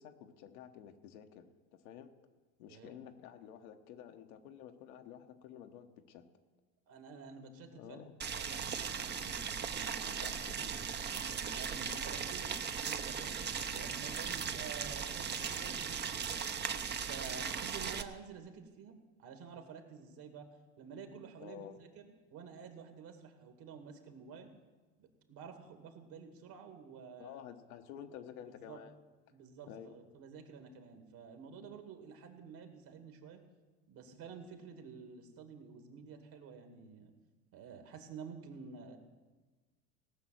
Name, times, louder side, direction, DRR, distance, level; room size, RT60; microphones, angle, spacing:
voice 1, 0.0-2.1 2.6-6.2 7.7-8.1 10.1-10.3 10.6-10.7 21.4-21.8 27.2-29.0 29.7-30.0, left 9 dB, 75° left, 6 dB, 1.2 m, -51 dB
voice 2, 6.9-8.0 8.3-10.7 11.2-12.6 12.8-16.5 17.1-18.9 19.2-20.5 20.8-24.5 25.0-27.4 28.6-28.8 29.3-33.4 33.9-37.1 37.5-39.0, right 6 dB, 55° right, 5 dB, 2.3 m, -50 dB
Boiling, 8.2-18.0, right 7 dB, 25° right, 0.7 m, -38 dB
18.0 x 6.2 x 7.6 m, 1.3 s
hypercardioid pair, 85°, 42 cm